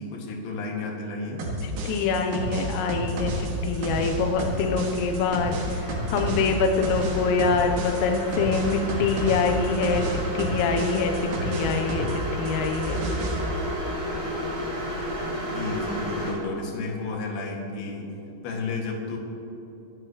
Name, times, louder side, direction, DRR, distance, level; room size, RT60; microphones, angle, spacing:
voice 1, 0.0-1.5 15.4-18.1 18.4-19.2, left 3 dB, 55° left, -1 dB, 3.6 m, -32 dB
sound 1, 1.4-12.2 12.5-13.4, right 1 dB, 85° right, 4.8 m, -30 dB
voice 2, 1.6-12.1 12.4-13.0, left 4 dB, 85° left, 4 dB, 3.4 m, -25 dB
sound 2, 3.1-16.3, equal, 30° right, 3.9 m, -33 dB
27.5 x 11.0 x 3.1 m, 3.0 s
omnidirectional pair, 5.9 m